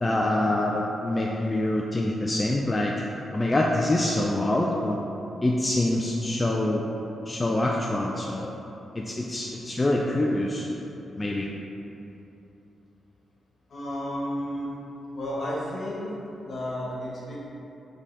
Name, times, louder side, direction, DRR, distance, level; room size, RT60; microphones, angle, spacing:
voice 1, 0.0-2.9 3.3-5.0 5.4-6.8 7.3-8.5 8.9-10.7 11.2-11.5, left 1 dB, 25° left, -2 dB, 0.3 m, -25 dB
voice 2, 13.7-14.7 15.1-16.1 16.4-17.5, equal, 55° left, -6 dB, 1.2 m, -32 dB
5.1 x 3.5 x 2.7 m, 3.0 s
cardioid pair, 75°, 0 cm